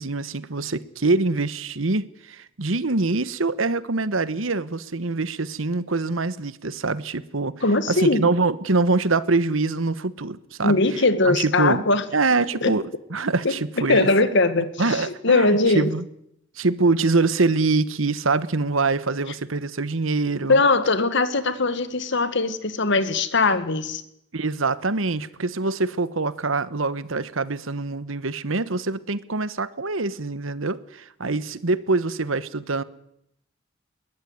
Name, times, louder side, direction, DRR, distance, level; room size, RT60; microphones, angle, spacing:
voice 1, 0.0-11.8 12.1-14.1 14.8-16.1 16.5-20.6 24.3-32.8, right 3 dB, 80° right, 1.2 m, -24 dB
voice 2, 7.6-8.3 10.6-12.0 12.6-12.8 13.9-15.9 20.5-24.0, left 3 dB, 60° left, 1.8 m, -20 dB
22.0 x 17.0 x 9.7 m
head